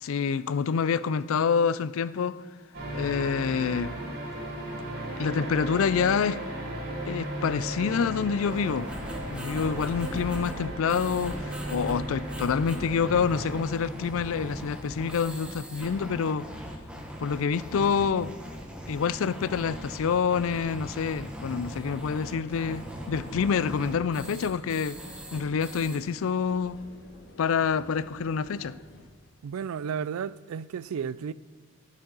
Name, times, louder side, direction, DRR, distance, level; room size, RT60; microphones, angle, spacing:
voice 1, 0.0-2.4 2.9-3.9 5.2-6.4 7.1-8.9 9.3-16.5 17.2-18.4 18.9-25.0 25.3-26.8 27.4-28.8, left 6 dB, 75° left, 0.4 m, -27 dB
sound 1, 2.7-13.6, right 1 dB, 50° right, 3.3 m, -36 dB
sound 2, 8.4-26.0, equal, 5° right, 1.1 m, -40 dB
sound 3, 21.4-29.0, equal, 55° left, 1.4 m, -50 dB
voice 2, 29.4-31.3, right 7 dB, 90° right, 0.3 m, -33 dB
11.5 x 7.4 x 5.4 m
head